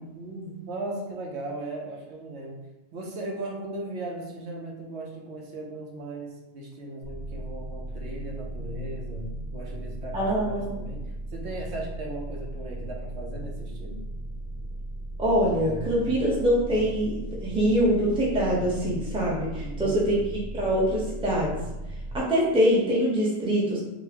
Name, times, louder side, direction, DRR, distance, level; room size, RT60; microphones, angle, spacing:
voice 1, 0.1-2.6 2.9-14.0 19.6-20.1, right 2 dB, 75° right, -1 dB, 1.0 m, -37 dB
sound 1, 7.0-22.2, right 1 dB, 50° right, 1.6 m, -36 dB
voice 2, 10.1-10.7 15.2-20.2 20.5-21.5 22.1-23.8, equal, 5° right, -5 dB, 0.6 m, -24 dB
3.9 x 2.1 x 2.8 m, 0.98 s
omnidirectional pair, 1.2 m